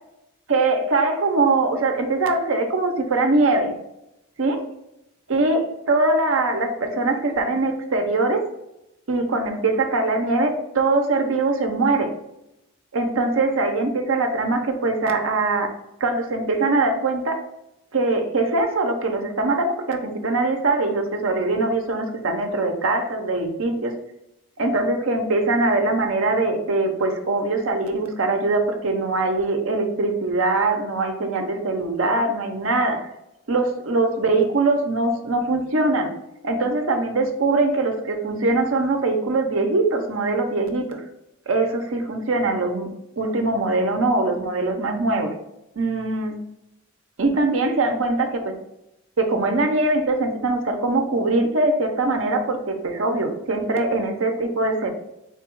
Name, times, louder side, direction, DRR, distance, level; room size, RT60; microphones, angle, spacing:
voice 1, 0.5-3.8 4.4-4.6 5.3-8.4 9.1-12.1 12.9-15.7 16.0-17.4 17.9-23.9 24.6-33.1 33.5-36.1 36.4-41.0 41.5-42.9 43.2-45.3 45.8-46.4 47.2-48.5 49.2-54.9, right 2 dB, 70° right, 4 dB, 0.7 m, -22 dB
4.5 x 2.3 x 4.5 m, 0.87 s
head